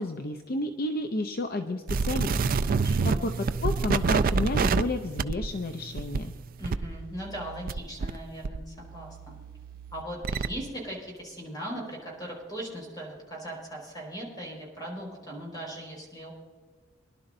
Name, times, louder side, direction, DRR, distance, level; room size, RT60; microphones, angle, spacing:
voice 1, 0.0-6.3, left 2 dB, 45° left, 6 dB, 0.6 m, -32 dB
sound 1, 1.9-8.2 8.4-10.5, right 4 dB, 45° right, 0.4 m, -28 dB
voice 2, 2.7-3.4 6.6-9.4 9.9-16.3, right 1 dB, 20° left, -2 dB, 4.7 m, -39 dB
25.0 x 11.5 x 2.6 m, 1.5 s
head